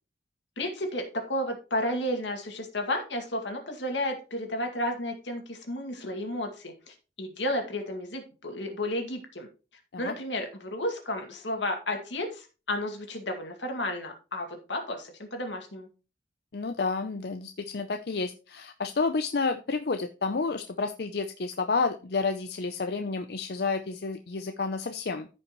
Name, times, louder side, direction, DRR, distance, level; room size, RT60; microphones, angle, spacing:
voice 1, 0.6-9.5 10.0-15.9, left 1 dB, 85° left, 4 dB, 2.2 m, -32 dB
voice 2, 16.5-25.3, left 4 dB, 60° left, 7 dB, 0.6 m, -30 dB
14.0 x 5.4 x 3.1 m, 0.33 s
head